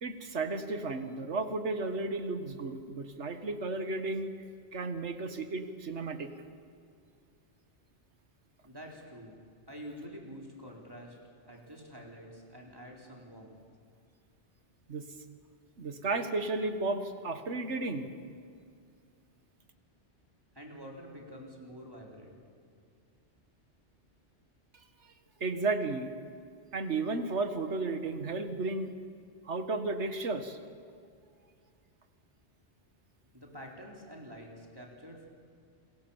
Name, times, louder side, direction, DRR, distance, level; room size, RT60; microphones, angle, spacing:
voice 1, 0.0-4.3 4.7-6.3 14.9-15.1 15.8-18.1 25.4-26.1 26.7-28.9 29.5-30.6, right 3 dB, 70° right, 8 dB, 1.8 m, -33 dB
voice 2, 8.6-9.4 9.7-11.2 11.4-13.6 20.5-22.4 33.3-35.3, equal, 20° right, -1 dB, 4.1 m, -47 dB
28.5 x 21.0 x 7.2 m, 2.3 s
omnidirectional pair, 1.2 m